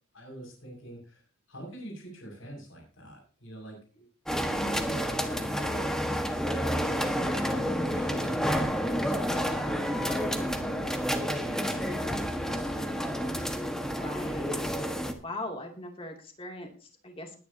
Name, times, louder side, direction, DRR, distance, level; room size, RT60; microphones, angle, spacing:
voice 1, 0.1-1.2 1.5-13.6, right 1 dB, 85° left, 0 dB, 6.2 m, -44 dB
sound 1, 4.3-15.1, equal, 5° left, 1.4 m, -30 dB
voice 2, 13.9-14.6 15.2-17.4, left 1 dB, 25° left, 3 dB, 2.6 m, -40 dB
20.5 x 10.5 x 2.8 m, 0.37 s
head